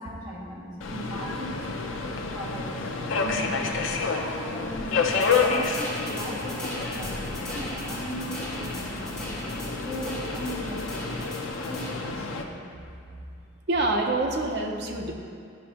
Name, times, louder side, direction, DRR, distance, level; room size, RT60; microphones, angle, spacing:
voice 1, 0.0-3.6 4.1-12.5, right 1 dB, 20° right, -10 dB, 1.9 m, -38 dB
Subway metro underground, 0.8-12.4, left 4 dB, 85° left, 0.6 m, -29 dB
sound 1, 5.1-12.0, left 1 dB, 5° left, 1.5 m, -39 dB
voice 2, 13.7-15.1, right 2 dB, 60° right, 1 dB, 0.8 m, -26 dB
11.5 x 5.2 x 2.9 m, 2.4 s
head